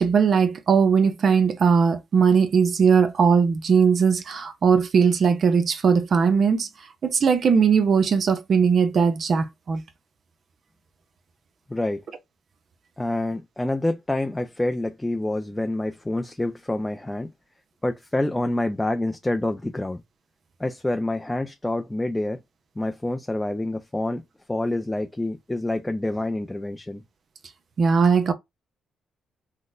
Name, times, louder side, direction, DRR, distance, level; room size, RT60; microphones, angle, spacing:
voice 1, 0.0-6.7 7.0-9.8 27.8-28.3, right 6 dB, 50° right, 0.5 m, -19 dB
voice 2, 11.7-12.0 13.0-17.3 17.8-20.0 20.6-22.4 22.8-24.2 24.5-27.0, left 1 dB, 10° left, 0.4 m, -27 dB
4.0 x 2.1 x 2.4 m
cardioid pair, 90°, 0 cm